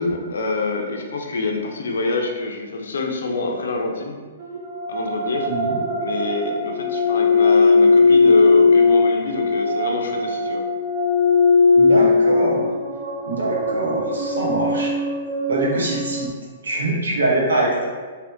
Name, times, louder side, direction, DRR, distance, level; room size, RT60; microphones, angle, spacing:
voice 1, 0.0-4.2 4.9-5.5 6.0-10.6, left 3 dB, 70° left, 2 dB, 0.5 m, -26 dB
sound 1, 4.4-16.3, left 3 dB, 45° right, 0.4 m, -18 dB
voice 2, 5.5-5.8 11.7-12.7 13.2-15.0 15.5-16.3 16.6-17.8, right 2 dB, 75° right, -3 dB, 0.8 m, -23 dB
3.4 x 2.7 x 2.5 m, 1.5 s
figure-of-eight pair, 120°, 0 cm